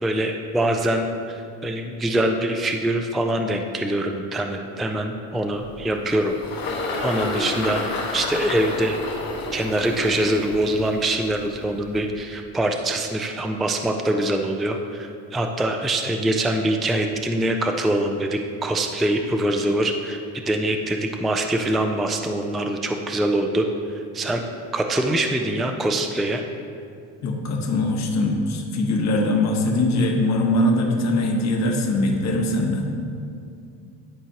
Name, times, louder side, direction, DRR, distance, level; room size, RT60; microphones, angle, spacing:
voice 1, 0.0-6.4 6.6-7.8 8.1-9.0 9.5-20.2 20.5-23.7 24.1-24.4 24.7-26.4, right 1 dB, ahead, 4 dB, 0.3 m, -24 dB
Engine, 5.6-12.2, left 3 dB, 65° left, 1.5 m, -30 dB
voice 2, 27.2-32.9, left 1 dB, 45° left, 1 dB, 1.2 m, -22 dB
11.0 x 4.4 x 2.9 m, 2.4 s
supercardioid pair, 90°, 38 cm